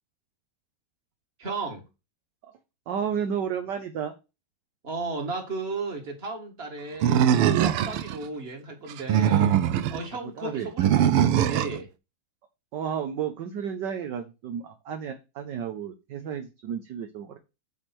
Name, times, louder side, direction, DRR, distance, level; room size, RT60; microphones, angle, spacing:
voice 1, 1.4-1.8 4.8-7.3 7.6-9.6 9.9-11.9, right 3 dB, 30° right, 2 dB, 2.0 m, -34 dB
voice 2, 2.9-4.1 10.4-10.7 12.7-17.4, right 8 dB, 60° right, 6 dB, 1.3 m, -32 dB
Animal, 7.0-8.2 8.9-10.0 10.8-11.8, right 9 dB, 85° right, 1.6 m, -21 dB
8.8 x 3.4 x 6.0 m, 0.27 s
omnidirectional pair, 2.4 m